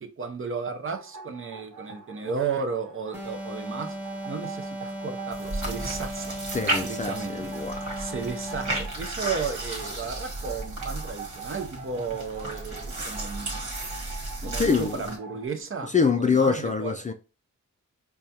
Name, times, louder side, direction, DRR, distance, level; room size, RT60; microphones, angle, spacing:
voice 1, 0.0-4.0 4.2-6.3 6.8-7.5 8.0-13.7 14.4-15.9 16.2-16.9, right 5 dB, 45° right, 0.7 m, -34 dB
sound 1, 0.8-15.5, right 5 dB, 85° right, 0.8 m, -44 dB
sound 2, 3.1-9.0, right 1 dB, 5° right, 1.1 m, -36 dB
sound 3, 5.3-15.2, right 1 dB, 65° right, 1.5 m, -34 dB
voice 2, 6.5-8.1 14.4-15.0 15.9-17.1, left 5 dB, 25° left, 0.3 m, -25 dB
4.7 x 2.3 x 2.8 m
wide cardioid pair, 100°, 30 cm